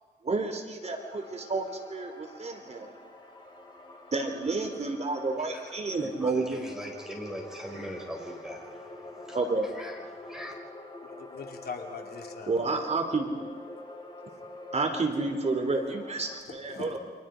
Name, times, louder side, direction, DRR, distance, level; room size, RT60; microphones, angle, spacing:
voice 1, 0.2-2.9 4.1-6.6 9.3-9.7 12.5-13.4 14.7-17.0, right 3 dB, 40° right, 4 dB, 3.4 m, -30 dB
sound 1, 0.8-16.4, left 2 dB, 25° left, 4.0 m, -46 dB
voice 2, 5.9-10.5, equal, 5° right, 0 dB, 5.7 m, -41 dB
voice 3, 11.0-12.6 16.4-17.0, left 5 dB, 65° left, 3 dB, 2.9 m, -41 dB
29.5 x 26.0 x 5.1 m, 1.4 s
wide cardioid pair, 125°, 18 cm